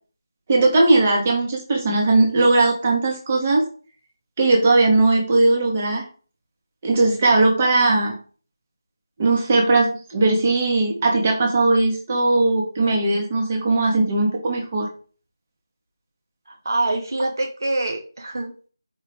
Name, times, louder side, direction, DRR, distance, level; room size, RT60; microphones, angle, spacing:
voice 1, 0.5-3.6 4.4-6.0 6.8-8.2 9.2-14.9, right 2 dB, 20° right, 0 dB, 0.8 m, -18 dB
voice 2, 16.5-18.7, right 2 dB, 55° right, 3 dB, 0.6 m, -25 dB
4.8 x 2.3 x 3.3 m, 0.39 s
figure-of-eight pair, 170°, 2 cm